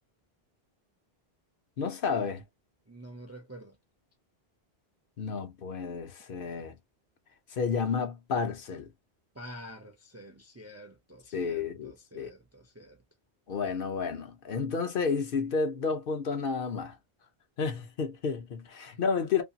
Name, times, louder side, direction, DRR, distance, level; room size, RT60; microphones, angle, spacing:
voice 1, 1.8-2.4 5.2-6.8 7.5-8.9 11.3-12.3 13.5-17.0 17.6-19.4, left 5 dB, 60° left, 0.8 m, -31 dB
voice 2, 2.9-3.8 9.3-13.0, equal, 25° right, 0.4 m, -48 dB
2.6 x 2.3 x 2.6 m
omnidirectional pair, 1.1 m